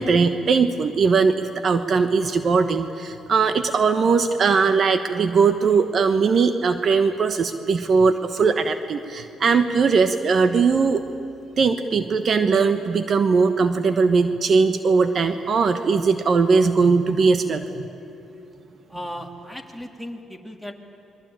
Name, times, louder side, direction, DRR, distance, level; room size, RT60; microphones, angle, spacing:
voice 1, 0.0-11.0 11.6-17.8, right 5 dB, 50° right, 8 dB, 1.2 m, -20 dB
voice 2, 18.9-20.7, equal, ahead, 4 dB, 2.7 m, -36 dB
27.0 x 22.5 x 9.0 m, 2.9 s
cardioid pair, 90°, 0 cm